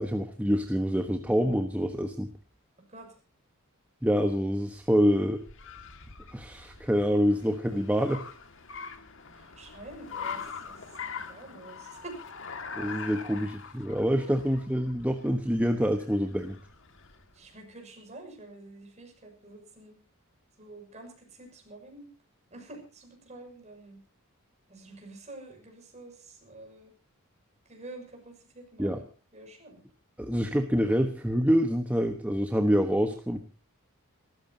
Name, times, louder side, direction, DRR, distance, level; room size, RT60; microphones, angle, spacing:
voice 1, 0.0-2.3 4.0-5.4 6.3-8.2 12.7-16.6 28.8-29.0 30.2-33.4, equal, 5° right, 6 dB, 1.2 m, -26 dB
Car, 4.4-17.4, left 6 dB, 60° left, 2.0 m, -43 dB
voice 2, 9.3-10.8 11.2-12.2 12.9-13.0 17.3-19.9 20.6-22.1 22.5-24.0 24.7-26.9 27.7-28.9 29.3-29.8, right 2 dB, 30° right, 3 dB, 6.5 m, -47 dB
28.0 x 14.5 x 2.8 m, 0.36 s
head